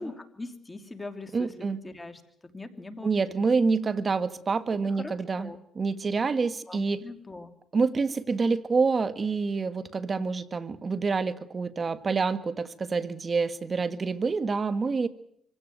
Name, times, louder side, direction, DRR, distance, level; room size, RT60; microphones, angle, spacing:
voice 1, 0.0-1.5 1.8-2.2 2.5-3.4 4.8-5.6 6.7-7.5, left 2 dB, 20° left, 6 dB, 2.9 m, -41 dB
voice 2, 1.3-1.8 3.0-7.0 7.7-15.1, right 4 dB, 35° right, 12 dB, 1.6 m, -27 dB
25.0 x 17.0 x 9.1 m, 0.70 s
cardioid pair, 90°, 0 cm